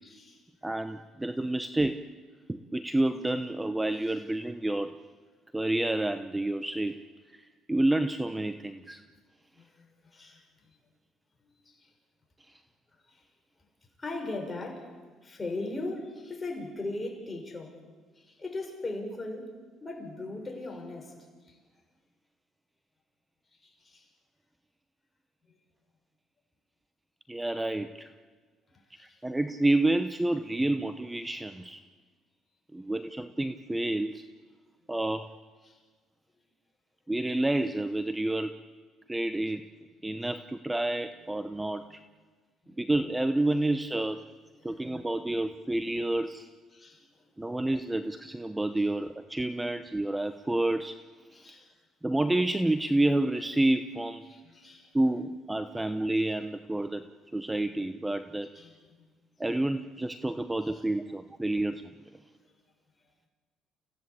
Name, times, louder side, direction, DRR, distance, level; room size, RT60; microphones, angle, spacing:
voice 1, 0.0-0.4 4.0-4.2 9.5-10.8 11.4-11.9 13.0-13.3 14.0-17.8 18.1-19.5 19.8-21.6 23.5-24.1 25.5-25.6 28.7-29.2 35.6-35.8 41.8-42.0 42.6-42.8 44.6-45.1 46.7-47.3 48.7-48.9 51.3-51.7 54.3-55.0 55.7-55.8 58.5-59.1 60.6-60.8, left 2 dB, 20° left, 2 dB, 6.5 m, -40 dB
voice 2, 0.6-2.0 2.5-4.9 5.5-7.0 7.3-9.0 27.3-28.1 29.0-31.8 32.7-34.2 34.9-35.3 37.1-38.6 39.1-39.7 40.0-42.0 42.8-44.2 44.6-46.5 47.4-51.0 52.0-54.2 54.9-57.0 57.3-58.5 59.4-61.9, right 1 dB, 10° right, 10 dB, 0.9 m, -29 dB
29.0 x 16.5 x 8.5 m, 1.5 s
supercardioid pair, 90°, 0 cm